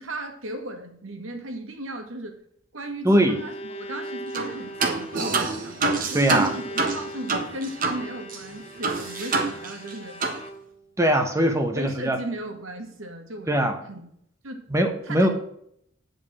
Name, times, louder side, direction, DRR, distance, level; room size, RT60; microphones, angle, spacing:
voice 1, 0.0-2.4 2.7-5.8 6.1-10.2 11.7-14.0 14.4-14.6 15.0-15.3, right 1 dB, 80° right, 4 dB, 1.9 m, -36 dB
Bowed string instrument, 2.9-10.9, right 1 dB, 30° left, 0.8 m, -40 dB
voice 2, 3.0-3.4 6.1-6.5 11.0-12.2 13.5-13.8 14.7-15.3, right 1 dB, 15° right, 5 dB, 1.1 m, -21 dB
sound 1, 4.3-4.5 4.8-8.0 8.3-8.4 8.8-9.9 10.2-10.4, right 3 dB, 40° right, 1.3 m, -26 dB
9.2 x 5.3 x 6.0 m, 0.69 s
head